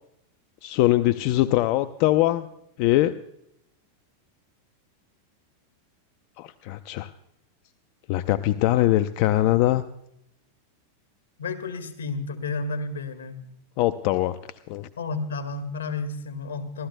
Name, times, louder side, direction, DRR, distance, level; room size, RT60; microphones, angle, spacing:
voice 1, 0.6-2.5 2.8-3.2 6.4-7.1 8.1-9.8 13.8-14.4 14.7-14.9, left 15 dB, 55° left, 12 dB, 0.6 m, -22 dB
voice 2, 11.4-13.5 15.0-16.9, left 3 dB, 85° left, 9 dB, 1.8 m, -31 dB
27.5 x 13.5 x 2.2 m, 0.77 s
hypercardioid pair, 105°, 0 cm